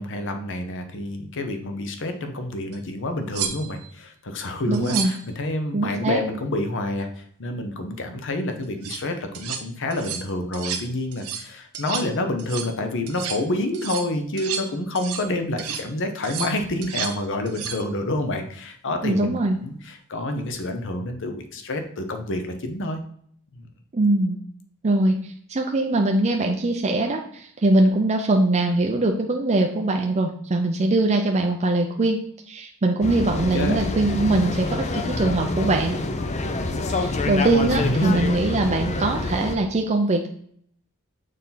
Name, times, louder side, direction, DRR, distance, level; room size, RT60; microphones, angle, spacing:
voice 1, 0.0-23.0 23.5-23.7 33.5-33.8 37.8-38.1, left 1 dB, 60° left, 6 dB, 0.8 m, -28 dB
sound 1, 2.7-2.8 3.3-3.9 4.7-5.3 8.6-9.0 9.3-9.6 9.9-10.3 10.5-10.9 11.1-11.5 11.7-12.1 12.4-12.7 13.1-13.4 13.7-15.3 15.6-15.9 16.2-17.2 17.5-17.8 20.4-20.6, right 8 dB, 90° right, 0.7 m, -32 dB
voice 2, 4.7-5.1 5.7-6.2 19.0-19.6 23.9-24.4 24.8-32.2 32.5-36.0 36.9-40.3, right 2 dB, 30° right, 3 dB, 0.5 m, -22 dB
sound 2, 33.0-39.6, left 2 dB, 30° left, 0.5 m, -27 dB
6.5 x 4.2 x 3.9 m, 0.63 s
head